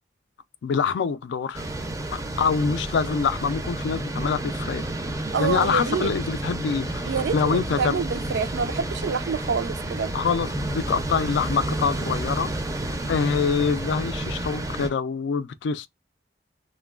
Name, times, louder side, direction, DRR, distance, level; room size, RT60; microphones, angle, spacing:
voice 1, 0.6-1.6 2.1-4.8 5.4-8.0 10.1-12.5 13.1-15.9, left 5 dB, 80° left, 0.3 m, -25 dB
sound 1, 1.5-14.9, right 1 dB, 20° right, 0.4 m, -30 dB
voice 2, 5.3-6.1 7.1-10.1, right 6 dB, 85° right, 0.4 m, -27 dB
3.0 x 2.1 x 2.3 m
head